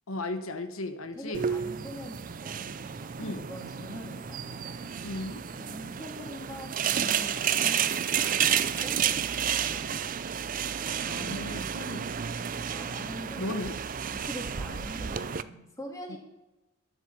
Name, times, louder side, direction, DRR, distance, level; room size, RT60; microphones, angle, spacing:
voice 1, 0.1-1.5 3.2-3.5 5.0-5.4 11.1-12.1 13.4-13.8 16.1-16.2, left 2 dB, 90° left, 8 dB, 1.0 m, -35 dB
voice 2, 1.1-5.0 5.5-9.3 9.6-10.0 12.6-13.6 14.1-16.2, equal, 15° left, 0 dB, 2.6 m, -44 dB
sound 1, 1.3-15.4, right 8 dB, 40° right, 0.4 m, -31 dB
12.5 x 7.2 x 7.7 m, 0.98 s
head